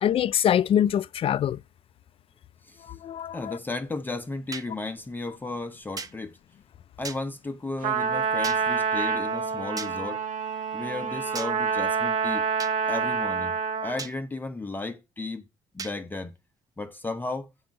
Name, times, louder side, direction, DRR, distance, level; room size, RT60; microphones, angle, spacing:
voice 1, 0.0-1.6 2.9-3.6, left 10 dB, 45° left, 0.4 m, -24 dB
voice 2, 3.3-6.4 7.0-10.2 10.7-12.4 12.9-13.6 13.8-15.4 15.7-16.3 16.8-17.5, left 3 dB, 15° left, 0.8 m, -34 dB
sound 1, 4.5-4.7 6.0-6.1 7.0-7.2 8.4-8.6 9.8-9.9 11.3-11.5 12.6-12.7 14.0-14.1 15.8-15.9, right 4 dB, 25° right, 0.8 m, -36 dB
Trumpet, 7.8-14.1, right 6 dB, 75° right, 1.9 m, -27 dB
7.9 x 4.8 x 5.1 m
cardioid pair, 135°, 13 cm